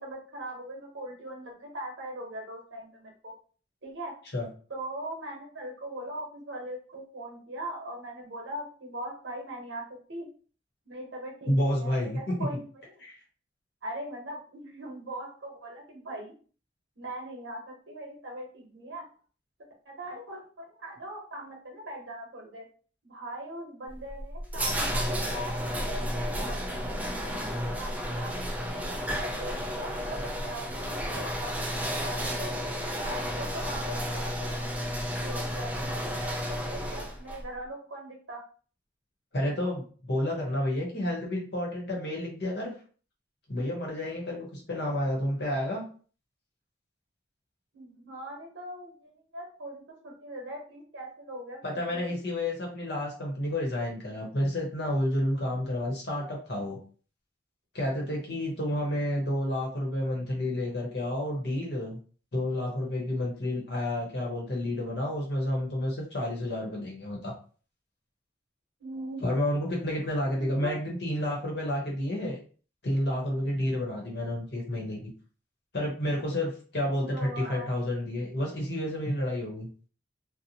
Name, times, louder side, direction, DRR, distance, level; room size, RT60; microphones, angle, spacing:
voice 1, 0.0-3.3 3.8-4.1 4.7-9.8 10.1-10.3 10.9-12.7 13.8-16.3 17.0-19.0 19.9-22.6 23.0-28.3 28.7-31.5 32.0-32.6 32.9-34.5 35.2-38.4 47.7-52.0 59.1-59.2 68.8-69.3 70.3-70.7 76.9-77.7, right 1 dB, 80° right, 0 dB, 0.9 m, -40 dB
voice 2, 11.5-12.3 13.0-13.2 39.3-42.7 43.5-45.9 51.6-56.8 57.7-62.0 62.3-67.3 69.2-72.4 72.8-75.1 75.7-79.7, left 1 dB, 60° left, -2 dB, 0.9 m, -30 dB
sound 1, 23.9-37.4, equal, 10° right, 0.3 m, -32 dB
2.7 x 2.0 x 2.8 m, 0.41 s
head